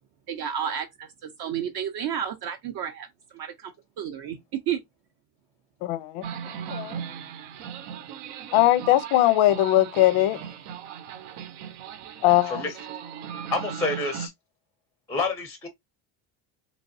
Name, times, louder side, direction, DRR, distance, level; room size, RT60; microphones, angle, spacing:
voice 1, 0.3-3.1 3.3-4.4 4.7-4.8, right 9 dB, 50° right, 0.5 m, -31 dB
voice 2, 5.8-6.2 6.7-7.0 8.5-10.4 12.2-12.6, left 15 dB, 90° left, 0.7 m, -20 dB
sound 1, 6.2-14.3, right 8 dB, 90° right, 0.8 m, -38 dB
voice 3, 13.5-14.3 15.1-15.7, left 3 dB, 5° left, 0.4 m, -28 dB
3.4 x 3.1 x 2.6 m
cardioid pair, 170°, 48 cm